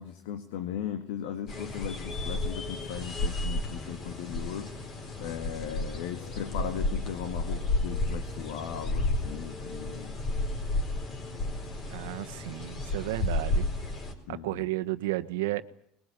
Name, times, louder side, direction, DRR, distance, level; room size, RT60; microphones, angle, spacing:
voice 1, 0.0-10.2 14.3-14.7, left 9 dB, 80° left, 8 dB, 1.8 m, -38 dB
sound 1, 1.5-14.1, left 2 dB, 40° left, 4.3 m, -32 dB
voice 2, 11.9-13.6 14.3-15.6, right 17 dB, 85° right, 11 dB, 1.1 m, -32 dB
21.5 x 20.5 x 9.7 m, 0.70 s
supercardioid pair, 120°, 0 cm